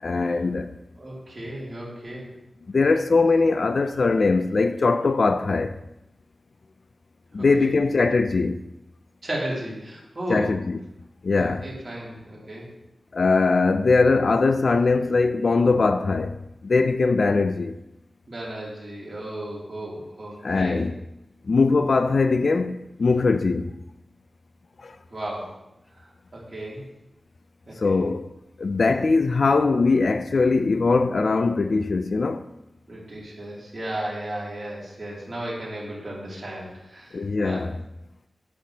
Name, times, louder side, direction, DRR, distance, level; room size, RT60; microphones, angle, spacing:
voice 1, 0.0-0.8 2.7-5.8 7.3-8.6 10.3-10.8 11.2-11.7 13.1-17.8 20.4-21.0 21.4-23.7 24.8-25.0 27.8-28.3 28.6-32.4 37.1-37.8, left 3 dB, 60° left, 0.4 m, -21 dB
voice 2, 1.0-2.3 7.4-7.7 9.2-10.5 11.3-12.7 18.3-20.8 25.1-25.5 26.3-26.9 27.7-28.0 32.9-37.6, right 1 dB, 30° right, 2.7 m, -34 dB
10.0 x 6.3 x 2.8 m
wide cardioid pair, 110°, 0 cm